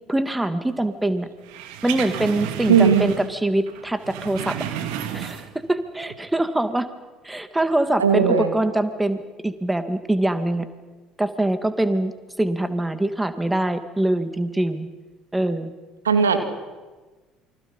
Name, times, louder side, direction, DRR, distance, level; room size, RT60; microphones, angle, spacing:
voice 1, 0.1-1.3 1.8-4.6 5.1-5.4 5.7-6.9 7.2-10.7 11.2-12.1 12.4-14.9 15.3-15.7, right 1 dB, 10° right, 10 dB, 2.4 m, -23 dB
sound 1, 1.5-3.4 3.7-5.7 6.0-6.1, right 9 dB, 70° right, 2.3 m, -32 dB
voice 2, 2.7-3.1 8.0-8.5 16.0-16.4, right 6 dB, 85° right, 7 dB, 2.4 m, -17 dB
28.5 x 25.0 x 5.6 m, 1.3 s
figure-of-eight pair, 60°, 0 cm